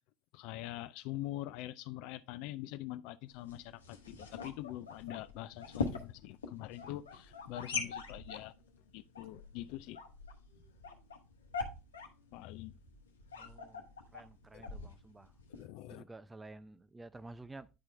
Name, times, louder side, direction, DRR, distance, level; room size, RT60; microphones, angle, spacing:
voice 1, 0.3-8.5 8.9-10.0 12.3-12.8 14.5-14.6 15.5-16.0, left 15 dB, 60° left, 0.5 m, -44 dB
sound 1, 3.3-15.7, left 4 dB, 85° left, 1.0 m, -43 dB
voice 2, 13.3-15.3 15.8-17.7, right 2 dB, 15° right, 0.5 m, -52 dB
9.9 x 4.4 x 3.2 m
hypercardioid pair, 70°, 0 cm